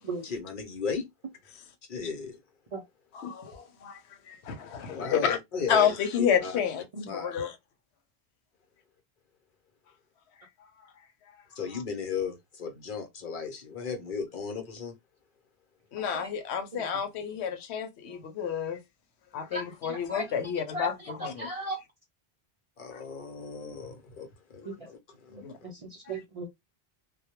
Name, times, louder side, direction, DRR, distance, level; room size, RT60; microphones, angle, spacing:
voice 1, 0.2-1.0 1.9-2.4 4.9-6.5 7.1-7.3 11.5-14.9 22.8-25.7, left 5 dB, 55° left, 0.8 m, -36 dB
voice 2, 3.1-4.0 4.3-5.4 5.7-6.8 7.1-7.5 15.9-18.8 19.3-21.5 25.4-25.5, left 8 dB, 90° left, 0.9 m, -29 dB
voice 3, 19.5-20.2 20.7-20.9 21.2-21.8 24.7-24.8 25.3-26.5, right 2 dB, 50° right, 0.4 m, -36 dB
2.2 x 2.1 x 2.9 m
omnidirectional pair, 1.1 m